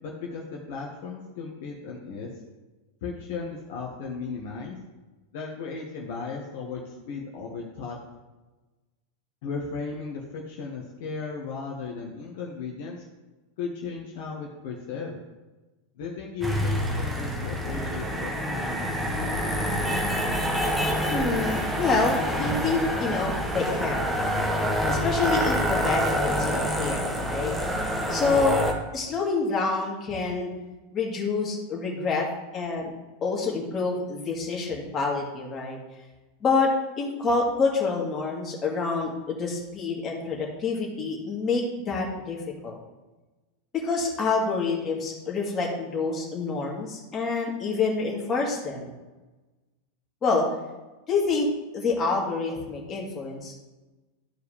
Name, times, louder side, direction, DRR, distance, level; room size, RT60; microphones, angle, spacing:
voice 1, 0.0-2.3 3.0-4.8 5.3-8.0 9.4-13.0 13.6-15.2 15.9-18.9 19.2-20.2, left 5 dB, 55° left, -2 dB, 1.3 m, -36 dB
sound 1, 16.4-28.7, equal, 10° right, 1.4 m, -27 dB
voice 2, 21.1-24.2 24.9-27.6 28.1-28.6 28.9-30.5 30.9-32.3 32.5-32.9 33.2-35.8 36.4-36.7 37.0-42.4 42.6-42.8 43.7-48.9 50.2-50.5 51.1-51.5 51.7-53.5, left 4 dB, 30° left, -2 dB, 2.4 m, -27 dB
13.5 x 4.7 x 3.3 m, 1.2 s
figure-of-eight pair, 90°, 0 cm